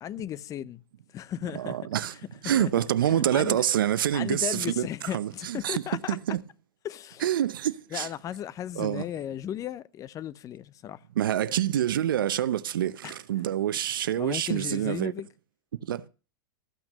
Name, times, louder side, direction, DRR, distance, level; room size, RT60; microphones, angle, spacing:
voice 1, 0.0-0.8 1.1-1.8 2.6-2.7 3.0-3.7 4.1-6.2 6.8-7.2 7.9-11.0 13.0-13.1 14.2-15.3, left 11 dB, 30° left, 0.6 m, -35 dB
voice 2, 1.5-2.2 2.4-4.8 5.1-5.8 6.1-6.4 7.2-8.1 8.8-9.0 11.2-15.1 15.8-16.1, right 11 dB, 80° right, 0.7 m, -26 dB
14.0 x 6.0 x 6.6 m
hypercardioid pair, 110°, 11 cm